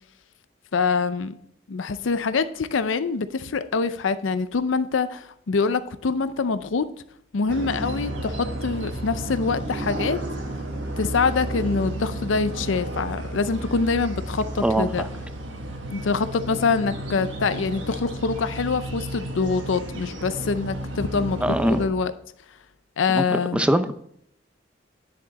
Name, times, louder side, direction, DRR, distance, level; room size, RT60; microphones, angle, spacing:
voice 1, 0.7-1.3 1.7-6.9 7.3-10.2 11.0-15.1 15.9-22.1 23.0-23.6, left 4 dB, 80° left, 12 dB, 0.5 m, -25 dB
sound 1, 7.5-21.9, right 1 dB, 70° right, 1.4 m, -32 dB
voice 2, 14.6-15.1 21.4-21.8 23.1-23.2 23.5-23.9, right 1 dB, 5° right, 10 dB, 0.5 m, -22 dB
10.0 x 6.6 x 4.1 m, 0.69 s
head